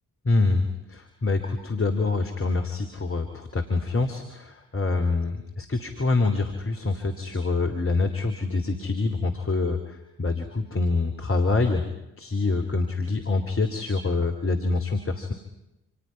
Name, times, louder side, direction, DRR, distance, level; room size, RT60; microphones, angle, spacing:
voice 1, 0.3-11.8 12.2-15.3, left 3 dB, 30° left, 5 dB, 3.0 m, -26 dB
28.5 x 27.5 x 5.8 m, 0.93 s
hypercardioid pair, 45°, 41 cm